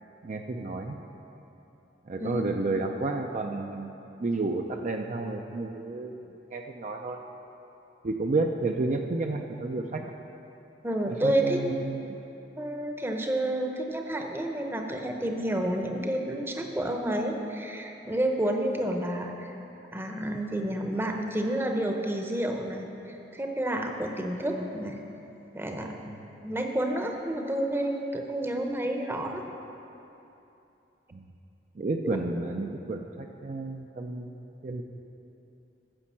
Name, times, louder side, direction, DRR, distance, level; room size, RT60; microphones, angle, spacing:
voice 1, 0.2-1.0 2.1-3.9 4.2-6.2 6.5-7.2 8.0-10.1 11.1-12.2 31.1-31.3 31.8-34.3 34.6-34.8, right 3 dB, 45° right, 3 dB, 0.4 m, -31 dB
voice 2, 10.8-11.6 12.6-19.5 19.9-25.0 25.5-26.0 26.4-29.4 32.0-32.2, right 1 dB, 15° right, 3 dB, 0.7 m, -30 dB
9.8 x 6.2 x 7.4 m, 2.9 s
head